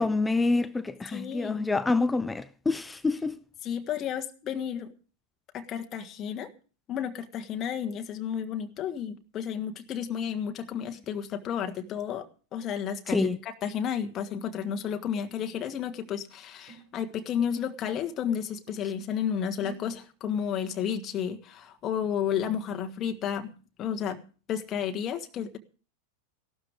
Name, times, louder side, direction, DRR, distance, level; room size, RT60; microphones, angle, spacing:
voice 1, 0.0-3.4 13.1-13.4, left 3 dB, 10° left, 0.8 m, -27 dB
voice 2, 1.1-1.6 3.6-4.9 5.5-6.5 6.9-12.3 12.5-24.2 24.5-25.6, left 8 dB, 30° left, 1.6 m, -32 dB
sound 1, 15.0-15.3 16.0-16.1 16.7-18.0 18.4-19.3 19.6-20.0, right 6 dB, 35° right, 2.6 m, -50 dB
16.0 x 12.5 x 4.9 m
figure-of-eight pair, 90°, 0 cm